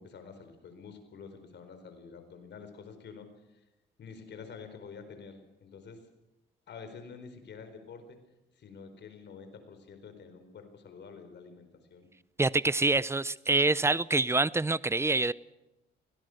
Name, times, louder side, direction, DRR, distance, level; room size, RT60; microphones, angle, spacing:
voice 1, 0.0-3.6 4.0-6.0 6.7-8.2 8.6-12.1, left 5 dB, 60° left, 8 dB, 4.5 m, -48 dB
voice 2, 12.4-15.3, right 3 dB, 15° right, 19 dB, 0.6 m, -26 dB
24.0 x 18.0 x 6.6 m, 0.99 s
cardioid pair, 90°, 20 cm